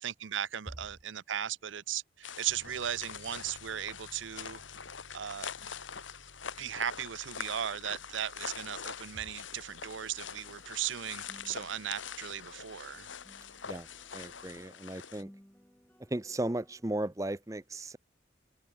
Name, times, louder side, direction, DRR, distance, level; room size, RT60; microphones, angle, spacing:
voice 1, 0.0-4.6 5.1-5.7 6.6-13.1, right 10 dB, 85° right, 0.6 m, -37 dB
sound 1, 2.2-15.2, left 7 dB, 90° left, 2.0 m, -44 dB
Piano, 2.5-14.7, equal, 60° right, 3.5 m, -60 dB
sound 2, 9.7-16.8, equal, 10° left, 2.1 m, -61 dB
voice 2, 14.1-15.3 16.1-18.0, right 1 dB, 15° right, 0.6 m, -35 dB
head